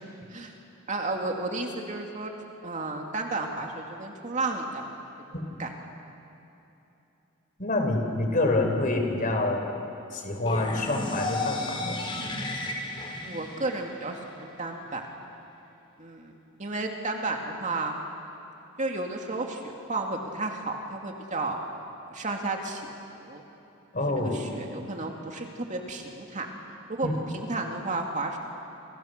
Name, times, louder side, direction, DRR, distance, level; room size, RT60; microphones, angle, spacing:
voice 1, 0.9-2.3 2.6-4.9 5.6-5.7 13.2-15.0 16.0-16.3 16.6-18.0 18.8-21.6 22.0-23.4 24.1-26.5 26.9-27.1 27.3-28.4, right 3 dB, 35° right, 2 dB, 2.5 m, -32 dB
voice 2, 7.6-9.8 10.1-12.0 23.9-24.5 27.0-27.2, left 2 dB, 40° left, 3 dB, 4.3 m, -27 dB
sound 1, 10.4-14.4, left 2 dB, 25° left, 3.4 m, -33 dB
29.0 x 28.5 x 6.7 m, 2.9 s
head